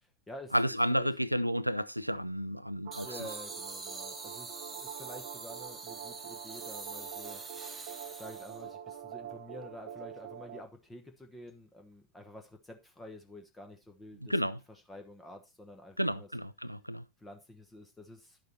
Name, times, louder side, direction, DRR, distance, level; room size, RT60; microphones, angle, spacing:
voice 1, 0.0-0.5 0.9-1.1 3.0-7.4 8.2-14.3 14.9-16.3 17.2-18.4, left 1 dB, 10° left, 1.2 m, -49 dB
voice 2, 0.5-3.3 14.2-14.6 16.0-17.0, equal, 90° right, 0.4 m, -31 dB
sound 1, 2.8-10.6, right 9 dB, 50° right, 0.8 m, -45 dB
sound 2, 2.9-8.7, right 3 dB, 15° right, 1.3 m, -45 dB
10.0 x 6.6 x 4.2 m
figure-of-eight pair, 90°, 0 cm